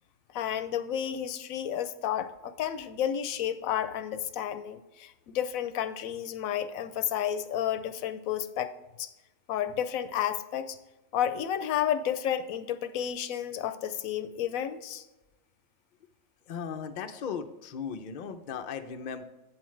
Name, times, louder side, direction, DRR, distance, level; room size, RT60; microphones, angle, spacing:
voice 1, 0.3-8.7 9.0-9.1 9.5-10.8 11.1-15.0, left 10 dB, 80° left, 11 dB, 1.0 m, -31 dB
voice 2, 16.5-19.2, left 6 dB, 50° left, 7 dB, 0.6 m, -37 dB
8.7 x 7.4 x 3.2 m, 1.0 s
omnidirectional pair, 1.4 m